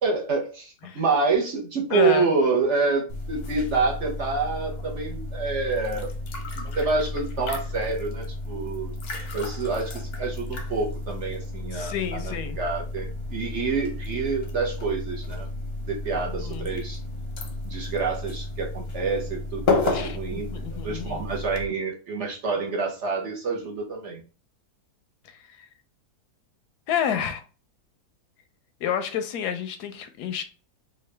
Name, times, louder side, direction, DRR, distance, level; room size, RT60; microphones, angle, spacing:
voice 1, 0.0-6.1 6.5-8.9 9.3-15.5 15.9-17.0 17.6-20.5 20.8-24.2, right 4 dB, 55° right, 1.0 m, -27 dB
voice 2, 1.9-2.3 11.7-12.6 16.4-16.7 19.9-21.2 26.9-27.4 28.8-30.4, left 9 dB, 85° left, 1.1 m, -29 dB
sound 1, 3.1-21.7, left 2 dB, 55° left, 0.7 m, -32 dB
3.8 x 2.3 x 3.2 m
omnidirectional pair, 1.7 m